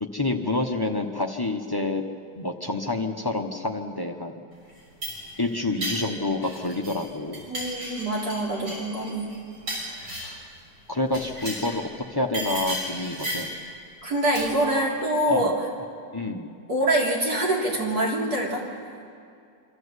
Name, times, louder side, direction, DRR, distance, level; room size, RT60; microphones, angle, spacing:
voice 1, 0.0-2.0 2.4-4.3 5.4-7.4 10.0-10.4 10.9-13.5 14.7-14.9 15.3-15.5 16.1-16.5, left 2 dB, 20° left, 3 dB, 0.7 m, -28 dB
sound 1, 4.7-7.0 7.3-10.5 11.1-11.8 12.3-13.6 14.3-14.7, equal, 90° right, 7.6 m, -34 dB
voice 2, 7.5-9.3 14.0-15.5 16.7-18.6, right 1 dB, 60° right, -4 dB, 4.1 m, -25 dB
25.0 x 13.0 x 8.1 m, 2.4 s
omnidirectional pair, 1.9 m